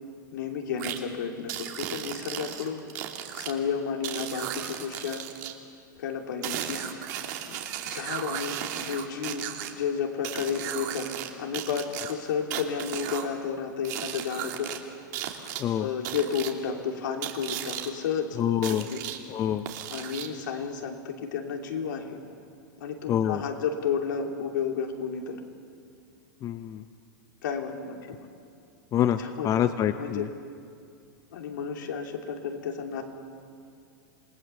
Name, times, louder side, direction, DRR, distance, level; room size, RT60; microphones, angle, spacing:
voice 1, 0.3-2.8 3.3-5.3 6.0-6.8 7.5-7.6 7.8-11.1 11.4-14.7 15.8-18.4 18.7-19.0 19.9-22.2 22.8-25.4 27.4-28.3 29.2-29.6 29.9-30.3 31.3-33.0, left 6 dB, 75° left, 2 dB, 3.1 m, -32 dB
sound 1, 0.8-1.0 1.5-3.5 4.0-5.5 6.4-9.7 10.2-11.3 11.5-13.3 13.8-14.8 15.1-15.6 16.0-16.5 17.2-17.9 18.6-19.2 19.7-20.4, right 11 dB, 60° right, 2.5 m, -35 dB
voice 2, 18.4-18.8 19.3-19.6 23.1-23.4 26.4-26.8 28.9-30.3, left 10 dB, 30° left, 10 dB, 0.7 m, -26 dB
27.5 x 19.0 x 7.0 m, 2.4 s
hypercardioid pair, 115°, 10 cm